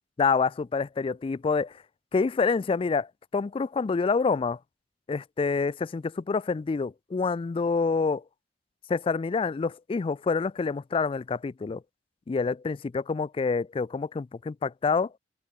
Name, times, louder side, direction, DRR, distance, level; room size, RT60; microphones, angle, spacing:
voice 1, 0.2-1.7 2.1-3.1 3.3-4.6 5.1-8.2 8.9-11.8 12.3-15.1, left 4 dB, 30° left, 0.3 m, -27 dB
open air
head